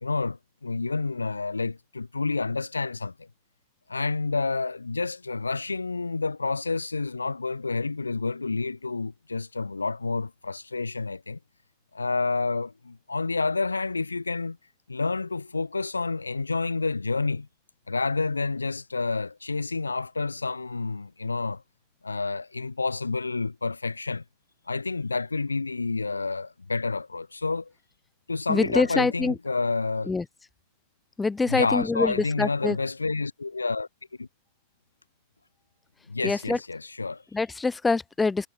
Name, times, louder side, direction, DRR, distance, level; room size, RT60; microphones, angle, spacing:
voice 1, 0.0-3.3 3.9-11.4 11.9-14.6 14.9-17.5 17.9-21.6 22.0-24.2 24.7-27.7 28.3-30.1 31.5-33.9 34.2-34.3 36.1-37.2, left 3 dB, 80° left, 1.8 m, -29 dB
voice 2, 28.5-29.4 30.0-30.3 31.2-32.8 36.2-36.6 37.3-38.5, left 4 dB, 10° left, 1.1 m, -25 dB
figure-of-eight pair, 90°, 0 cm